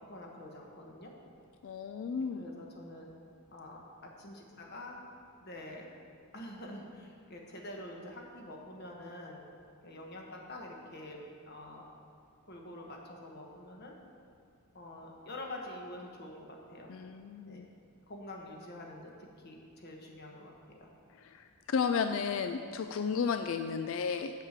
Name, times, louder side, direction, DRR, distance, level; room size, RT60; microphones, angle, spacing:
voice 1, 0.0-1.1 2.2-3.1 3.5-3.8 4.2-5.1 5.4-5.9 6.3-9.4 9.8-11.2 11.5-11.9 12.5-13.9 14.7-16.9 17.5-17.6 18.1-20.5 20.8-20.9, left 1 dB, 50° left, 0 dB, 1.4 m, -46 dB
voice 2, 1.6-2.5 16.9-17.7 21.2-24.3, left 6 dB, 65° left, 8 dB, 0.3 m, -33 dB
7.5 x 6.6 x 7.4 m, 2.3 s
head